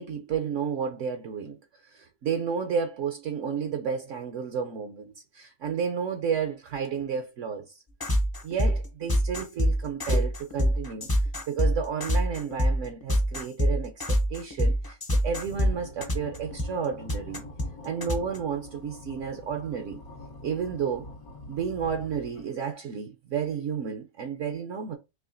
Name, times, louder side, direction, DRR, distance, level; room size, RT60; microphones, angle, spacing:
voice 1, 0.0-1.6 1.8-7.7 8.4-11.1 11.5-15.0 15.2-17.4 17.8-20.0 20.4-21.1 21.5-25.0, right 7 dB, 65° right, 0.9 m, -31 dB
sound 1, 8.0-18.4, equal, 30° left, 0.4 m, -25 dB
sound 2, 15.4-22.7, left 1 dB, 80° left, 1.4 m, -45 dB
4.8 x 3.0 x 2.5 m
omnidirectional pair, 1.5 m